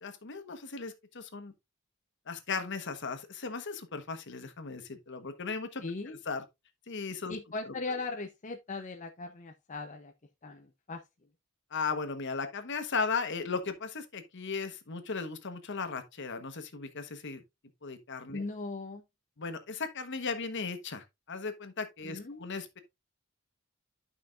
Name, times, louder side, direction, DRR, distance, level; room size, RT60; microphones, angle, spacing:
voice 1, 0.0-1.5 2.3-6.4 6.9-7.3 11.7-17.4 17.8-18.4 19.4-22.8, left 4 dB, 60° left, 1.2 m, -36 dB
voice 2, 5.8-6.2 7.3-10.1 10.4-11.0 18.3-19.0 22.0-22.5, left 3 dB, 35° left, 0.7 m, -39 dB
11.5 x 5.7 x 2.5 m
head